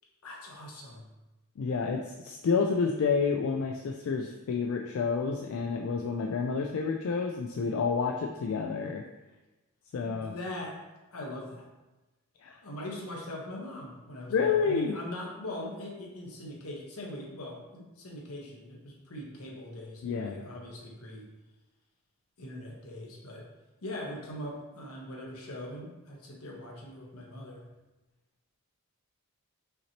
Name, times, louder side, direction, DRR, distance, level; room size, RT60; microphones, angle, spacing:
voice 1, 0.2-1.1 10.0-10.8 11.1-11.7 12.6-21.3 22.4-23.5 23.8-27.6, left 1 dB, 85° left, -1 dB, 1.0 m, -41 dB
voice 2, 1.6-9.0 9.9-10.3 12.4-12.6 14.3-14.9 20.0-20.5, left 5 dB, 70° left, 2 dB, 0.3 m, -29 dB
5.7 x 2.8 x 2.9 m, 1.1 s
head